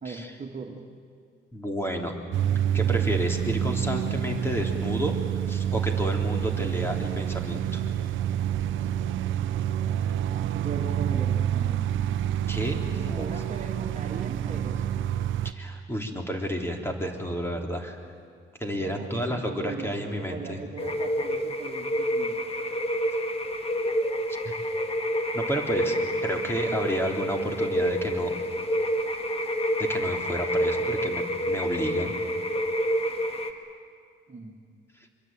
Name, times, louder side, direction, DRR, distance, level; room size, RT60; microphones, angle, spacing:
voice 1, 0.0-0.8 10.5-11.9 12.9-15.0 18.8-22.5 34.3-34.6, right 4 dB, 35° right, 2 dB, 2.3 m, -39 dB
voice 2, 1.5-2.1 2.7-5.2 5.5-7.8 12.5-13.3 15.5-18.0 18.6-20.6 24.4-24.5 25.3-26.0 26.2-28.4 29.8-32.1, equal, 10° left, 3 dB, 3.6 m, -31 dB
sound 1, 2.3-15.5, right 10 dB, 80° right, 0.9 m, -28 dB
sound 2, 20.8-33.5, equal, 30° left, 2.3 m, -28 dB
25.5 x 22.5 x 9.0 m, 2.1 s
cardioid pair, 90°, 20 cm